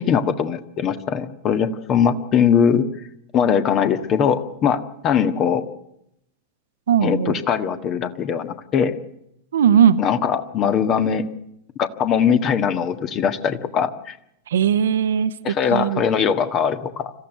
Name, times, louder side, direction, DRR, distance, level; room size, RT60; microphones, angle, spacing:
voice 1, 0.0-2.9 3.3-5.7 7.0-8.9 10.0-11.3 11.8-14.2 15.4-17.1, left 7 dB, 35° left, 9 dB, 1.6 m, -21 dB
voice 2, 6.9-7.4 9.5-10.0 14.5-16.0, right 8 dB, 65° right, 11 dB, 1.0 m, -18 dB
26.0 x 15.0 x 9.1 m, 0.80 s
figure-of-eight pair, 90°, 0 cm